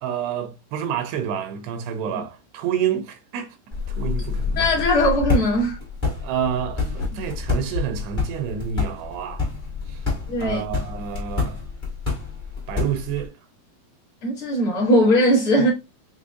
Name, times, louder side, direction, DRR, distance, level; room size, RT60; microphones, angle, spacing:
voice 1, 0.0-3.6 3.9-4.7 6.2-9.5 9.9-10.0 10.4-11.6 12.7-13.3, right 8 dB, 80° right, 2.6 m, -28 dB
sound 1, 3.7-13.3, left 4 dB, 25° left, 1.1 m, -28 dB
voice 2, 4.6-5.8 7.1-7.2 10.3-10.6 14.2-15.7, equal, 40° left, 2.1 m, -19 dB
sound 2, 6.9-9.3, left 4 dB, 55° left, 2.4 m, -34 dB
6.6 x 2.9 x 2.4 m
omnidirectional pair, 4.8 m